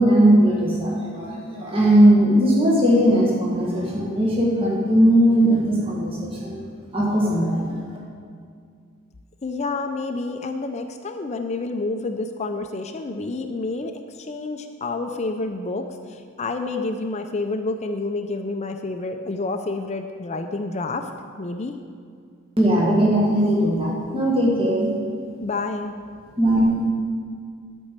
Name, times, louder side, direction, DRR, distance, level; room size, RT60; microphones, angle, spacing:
voice 1, 0.0-6.6 6.9-7.8 22.6-24.9 26.4-26.8, right 1 dB, 25° right, -4 dB, 1.7 m, -18 dB
voice 2, 9.4-21.1 21.4-21.8 25.4-25.9, left 3 dB, 35° left, 6 dB, 0.5 m, -29 dB
12.0 x 5.4 x 7.4 m, 2.2 s
head